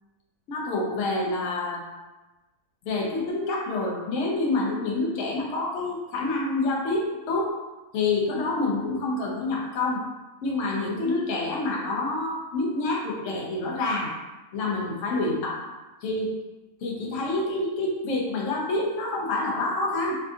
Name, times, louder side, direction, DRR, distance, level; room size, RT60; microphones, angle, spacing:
voice 1, 0.5-1.9 2.8-7.5 7.9-10.0 10.4-14.1 14.5-15.6 16.0-16.3 16.8-20.1, left 2 dB, 60° left, -3 dB, 1.0 m, -27 dB
3.4 x 2.6 x 2.4 m, 1.1 s
omnidirectional pair, 1.6 m